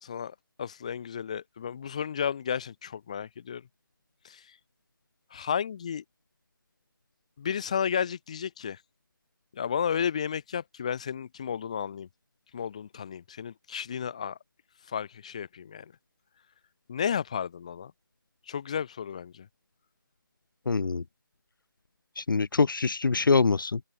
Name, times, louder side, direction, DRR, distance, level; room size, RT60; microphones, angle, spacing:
voice 1, 0.0-3.6 4.2-4.4 5.3-6.0 7.4-8.8 9.5-12.1 12.5-14.4 14.9-15.9 16.9-17.9 18.5-19.5, left 7 dB, 20° left, 2.6 m, -33 dB
voice 2, 20.7-21.0 22.2-23.8, left 4 dB, 70° left, 0.4 m, -24 dB
open air
figure-of-eight pair, 175°, 11 cm